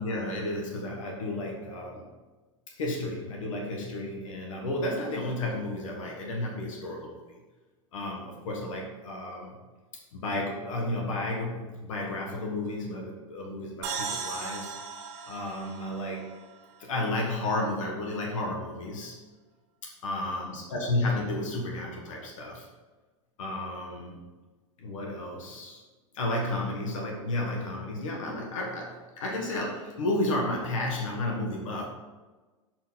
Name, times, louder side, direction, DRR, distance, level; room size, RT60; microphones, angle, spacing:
voice 1, 0.0-2.0 2.7-7.2 7.9-9.6 10.1-14.7 15.3-16.3 16.8-19.1 19.8-22.7 23.4-24.2 24.8-25.8 26.1-31.9, left 1 dB, 80° left, 0 dB, 1.3 m, -32 dB
sound 1, 13.8-17.4, right 5 dB, 45° right, 1.9 m, -38 dB
6.3 x 4.4 x 4.2 m, 1.2 s
hypercardioid pair, 110°, 16 cm